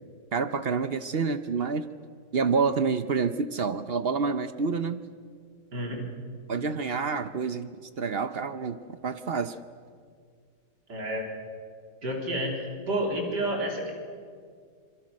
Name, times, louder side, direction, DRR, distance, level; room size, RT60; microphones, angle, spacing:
voice 1, 0.3-1.8 2.3-5.0 6.5-9.6, right 5 dB, 55° right, 11 dB, 0.6 m, -28 dB
voice 2, 5.7-6.1 10.9-11.3 12.0-13.9, right 1 dB, 75° right, 1 dB, 4.1 m, -30 dB
26.0 x 23.0 x 6.4 m, 2.1 s
omnidirectional pair, 1.9 m